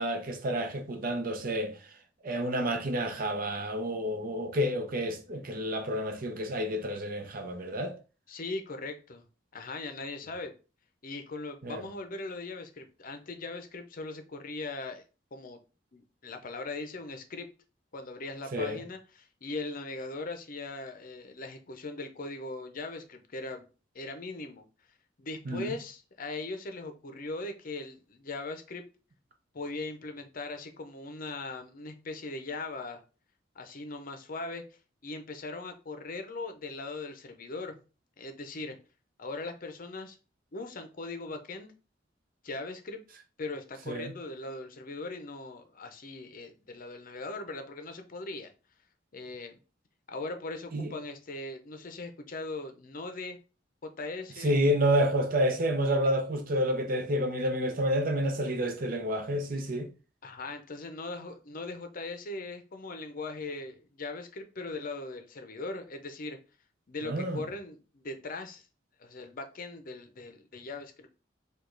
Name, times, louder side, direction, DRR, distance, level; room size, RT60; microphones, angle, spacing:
voice 1, 0.0-1.7 2.2-7.9 11.6-11.8 18.5-18.8 25.5-25.7 43.9-44.1 50.7-50.9 54.4-59.9 67.0-67.4, equal, 50° right, 0.7 m, -29 dB
voice 2, 8.3-9.2 9.5-10.5 11.0-15.0 15.3-15.6 15.9-17.5 17.9-23.7 23.9-24.6 25.2-28.8 29.5-33.0 33.6-34.6 35.0-37.8 38.2-38.8 39.2-40.2 40.5-41.7 42.4-43.0 43.4-48.5 49.1-49.6 50.1-53.4 53.8-54.6 60.2-66.4 66.9-68.7 69.0-71.1, left 3 dB, 50° left, 0.6 m, -39 dB
5.0 x 2.4 x 3.8 m
head